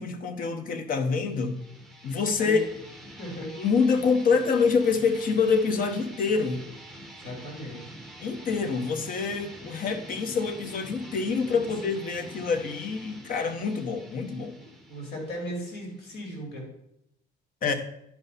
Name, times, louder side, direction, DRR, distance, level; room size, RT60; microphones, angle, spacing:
voice 1, 0.0-1.6 2.0-2.6 3.6-6.6 8.2-14.5 17.6-17.7, left 5 dB, 55° left, 8 dB, 1.1 m, -26 dB
sound 1, 1.1-16.5, right 1 dB, ahead, 1.3 m, -46 dB
voice 2, 3.2-3.5 7.2-7.8 11.6-11.7 14.6-16.6, equal, 75° left, 0 dB, 3.3 m, -37 dB
10.5 x 5.5 x 4.1 m, 0.76 s
cardioid pair, 110°, 17 cm